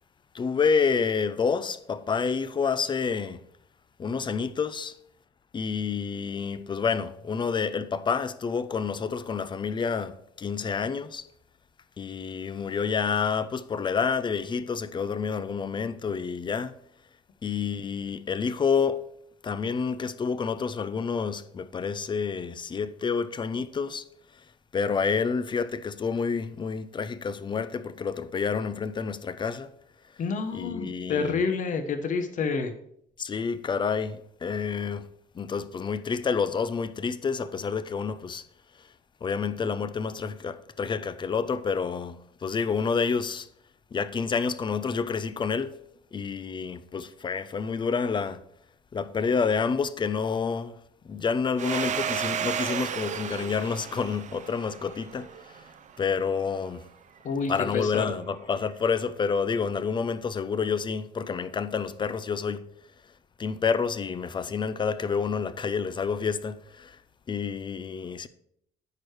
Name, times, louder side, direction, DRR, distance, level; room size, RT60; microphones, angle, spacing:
voice 1, 0.3-3.4 4.0-4.9 5.5-11.2 12.0-16.7 17.4-19.0 19.4-24.0 24.7-29.7 30.5-31.4 33.2-35.1 35.3-38.4 39.2-43.5 43.9-45.8 46.1-48.4 48.9-50.7 51.0-55.6 56.0-56.9 57.5-62.6 63.4-67.0 67.3-68.3, left 5 dB, 30° left, 0.5 m, -29 dB
voice 2, 30.2-32.7 57.2-58.1, left 5 dB, 50° left, 1.0 m, -28 dB
Domestic sounds home sounds, 51.6-56.0, right 8 dB, 45° right, 0.6 m, -33 dB
9.5 x 4.8 x 4.7 m
cardioid pair, 110°, 17 cm